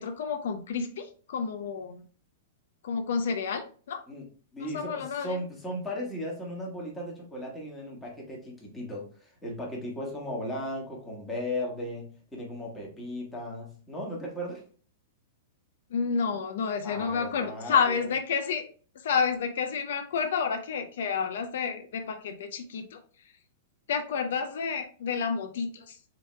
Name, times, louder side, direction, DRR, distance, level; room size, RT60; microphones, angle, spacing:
voice 1, 0.0-2.0 2.8-4.0 4.6-5.4 15.9-18.6 19.0-23.0 23.9-26.0, left 6 dB, 70° left, 7 dB, 0.5 m, -30 dB
voice 2, 4.5-14.6 16.8-18.1, equal, 10° left, -3 dB, 1.4 m, -36 dB
6.8 x 2.9 x 2.2 m, 0.42 s
supercardioid pair, 155°, 0 cm